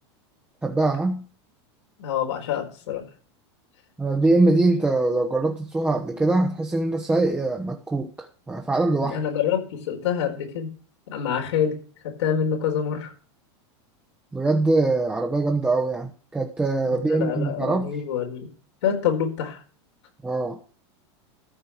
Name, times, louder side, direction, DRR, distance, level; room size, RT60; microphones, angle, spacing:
voice 1, 0.6-1.2 4.0-9.2 14.3-18.0 20.2-20.6, right 2 dB, 10° right, 2 dB, 1.1 m, -23 dB
voice 2, 2.0-3.0 9.0-10.7 11.1-11.8 12.0-13.1 16.9-18.5 18.8-19.6, left 8 dB, 85° left, 2 dB, 4.5 m, -26 dB
14.0 x 5.4 x 7.8 m, 0.40 s
supercardioid pair, 140°, 14 cm